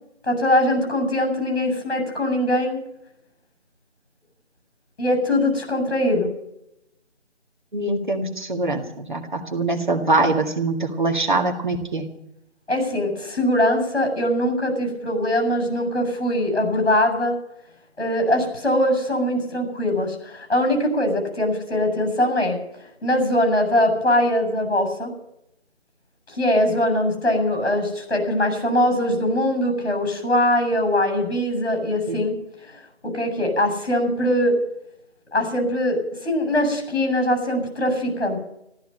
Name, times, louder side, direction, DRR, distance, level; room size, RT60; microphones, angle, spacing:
voice 1, 0.2-2.8 5.0-6.3 12.7-17.3 18.0-22.6 23.0-25.1 26.3-32.3 33.0-34.6 35.3-38.4, left 1 dB, 55° left, 4 dB, 7.2 m, -22 dB
voice 2, 7.7-12.1 32.1-32.2, right 2 dB, 40° right, 4 dB, 1.9 m, -23 dB
14.5 x 13.5 x 6.7 m, 0.82 s
figure-of-eight pair, 170°, 36 cm